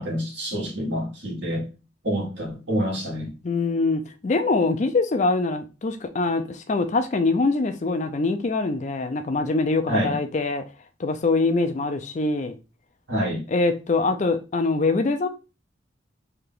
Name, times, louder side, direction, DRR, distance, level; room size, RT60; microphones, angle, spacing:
voice 1, 0.0-1.6 2.0-3.3 9.9-10.2 13.1-13.4, equal, 65° right, 1.7 m, -27 dB
voice 2, 3.4-10.6 11.0-12.5 13.5-15.3, left 3 dB, 35° left, 0.4 m, -23 dB
3.3 x 2.8 x 3.7 m
head